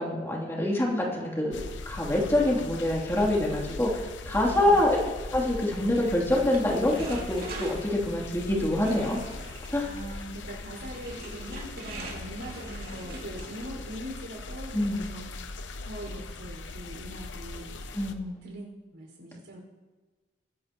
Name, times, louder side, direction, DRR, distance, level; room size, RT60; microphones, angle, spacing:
voice 1, 0.0-5.0 5.3-9.2 9.7-9.8 14.7-15.1 17.9-18.4, left 1 dB, 15° left, -3 dB, 2.9 m, -26 dB
sound 1, 1.5-18.1, left 3 dB, 75° left, 0.9 m, -40 dB
sound 2, 4.2-13.9, right 2 dB, 50° right, 2.5 m, -44 dB
voice 2, 4.5-4.8 9.8-15.3 15.8-17.7 18.4-19.6, right 1 dB, 85° right, -1 dB, 5.3 m, -41 dB
23.0 x 11.5 x 3.0 m, 1.3 s
head